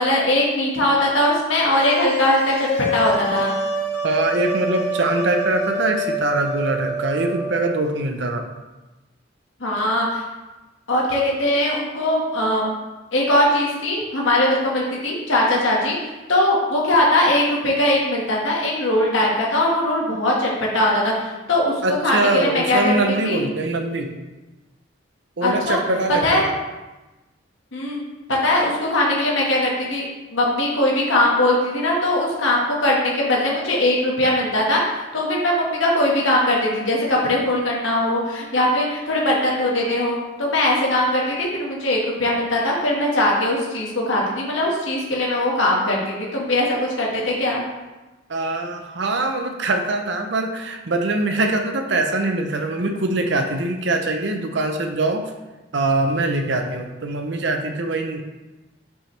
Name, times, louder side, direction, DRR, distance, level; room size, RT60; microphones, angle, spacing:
voice 1, 0.0-3.5 9.6-10.2 10.9-12.8 13.1-15.9 16.3-22.9 23.2-23.4 25.4-25.8 26.2-26.5 27.7-28.0 28.3-30.0 30.3-47.6, left 1 dB, 85° left, -3 dB, 1.6 m, -20 dB
sound 1, 1.7-7.8, equal, 60° left, 0.9 m, -26 dB
voice 2, 4.0-8.4 21.8-24.1 25.4-26.5 48.3-55.3 55.7-58.2, right 2 dB, 70° right, 5 dB, 0.7 m, -23 dB
5.8 x 5.5 x 3.3 m, 1.1 s
head